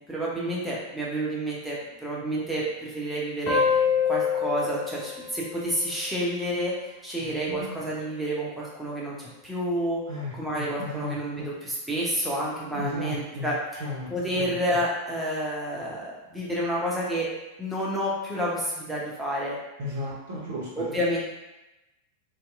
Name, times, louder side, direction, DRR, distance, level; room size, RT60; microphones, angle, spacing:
voice 1, 0.0-17.3 17.6-19.6 20.8-21.2, equal, 5° right, -6 dB, 0.7 m, -30 dB
sound 1, 3.5-6.6, left 6 dB, 40° left, 0.6 m, -27 dB
voice 2, 7.2-7.7 10.1-11.2 12.7-13.5 13.8-14.1 14.4-14.5 19.8-21.0, left 1 dB, 55° right, -5 dB, 0.5 m, -35 dB
2.7 x 2.0 x 2.4 m, 0.99 s
figure-of-eight pair, 90°, 0 cm